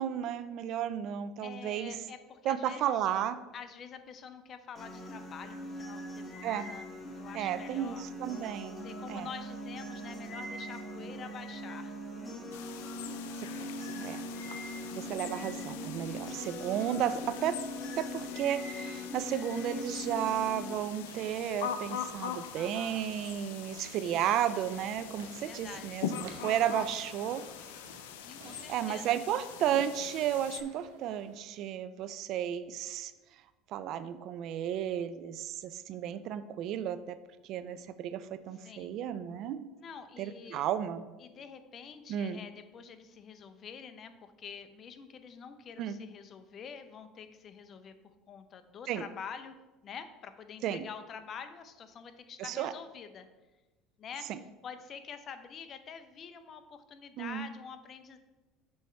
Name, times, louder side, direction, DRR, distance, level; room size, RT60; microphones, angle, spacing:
voice 1, 0.0-2.0 2.4-3.4 6.4-6.7 7.3-9.3 13.6-13.7 14.0-14.2 14.9-17.6 18.0-27.5 28.7-33.1 33.7-37.2 37.4-39.7 40.2-41.1 42.1-42.4 45.8-46.0 48.9-49.0 50.6-50.8 52.4-52.7 54.3-54.4 57.2-57.5, right 10 dB, 60° right, 13 dB, 0.4 m, -33 dB
voice 2, 1.4-3.1 3.5-8.2 8.8-12.0 22.5-23.0 25.4-25.9 28.1-29.0 38.6-39.0 39.8-40.7 41.2-47.9 48.3-49.6 49.8-53.3 54.0-54.3 54.6-58.2, left 6 dB, 45° left, 9 dB, 0.6 m, -47 dB
sound 1, 4.8-20.8, left 1 dB, 25° left, 1.5 m, -41 dB
sound 2, 12.5-30.6, left 9 dB, 85° left, 0.4 m, -43 dB
sound 3, 19.7-31.7, right 4 dB, 85° right, 1.0 m, -55 dB
7.0 x 3.2 x 5.6 m, 1.1 s
supercardioid pair, 95°, 0 cm